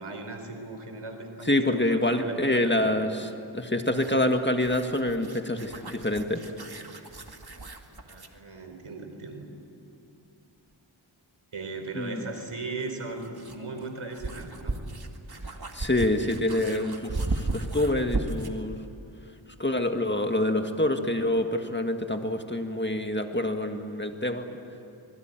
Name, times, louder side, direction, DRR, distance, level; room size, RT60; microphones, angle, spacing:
voice 1, 0.0-2.9 8.1-9.5 11.5-14.8 24.1-24.2, right 3 dB, 85° right, 5 dB, 3.9 m, -38 dB
voice 2, 1.5-6.4 12.0-12.2 15.7-18.8 19.6-24.5, left 1 dB, 20° left, 5 dB, 2.0 m, -26 dB
sound 1, 3.8-8.4 10.7-10.8 12.8-18.6, right 2 dB, 50° right, 2.3 m, -35 dB
26.0 x 22.0 x 9.2 m, 2.8 s
wide cardioid pair, 50°, 48 cm